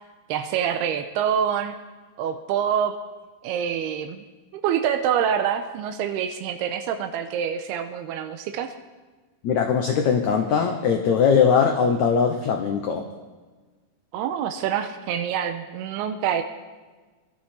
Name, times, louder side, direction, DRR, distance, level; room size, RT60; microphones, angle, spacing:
voice 1, 0.3-1.7 2.2-2.9 3.4-4.3 4.5-8.7 14.1-16.4, right 8 dB, 85° right, 7 dB, 2.7 m, -26 dB
voice 2, 9.4-13.0, left 6 dB, 85° left, 4 dB, 1.6 m, -20 dB
21.5 x 12.5 x 4.4 m, 1.3 s
omnidirectional pair, 4.7 m